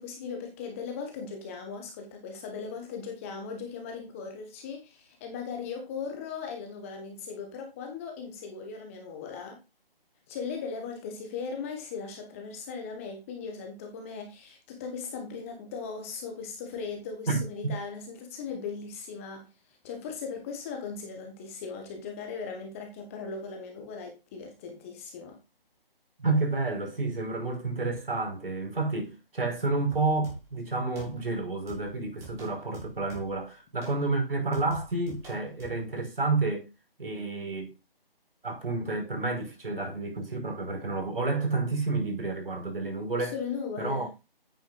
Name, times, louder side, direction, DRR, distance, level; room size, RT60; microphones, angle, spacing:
voice 1, 0.0-9.6 10.3-19.5 19.8-25.4 43.2-44.1, left 5 dB, 15° left, 1.3 m, -38 dB
voice 2, 17.3-17.7 26.2-36.7 37.0-37.7 38.4-43.4 43.8-44.1, right 3 dB, 65° right, 5.4 m, -30 dB
sound 1, 29.9-30.6 31.0-31.4 31.7-33.5 33.8-34.0 34.5-35.9, right 2 dB, 10° right, 2.1 m, -47 dB
10.0 x 9.4 x 2.5 m
figure-of-eight pair, 155°, 30 cm